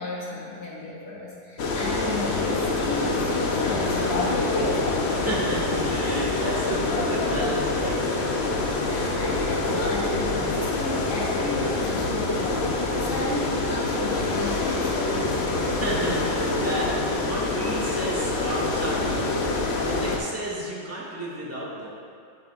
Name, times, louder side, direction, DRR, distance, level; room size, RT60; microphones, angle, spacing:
voice 1, 0.0-4.9 8.8-15.3, left 2 dB, 75° left, -5 dB, 1.8 m, -34 dB
sound 1, 1.6-20.2, left 2 dB, 55° left, 0.8 m, -26 dB
voice 2, 5.1-8.5 15.7-19.5 19.8-21.9, right 1 dB, 10° right, -5 dB, 1.1 m, -32 dB
8.3 x 7.7 x 2.4 m, 2.4 s
omnidirectional pair, 1.8 m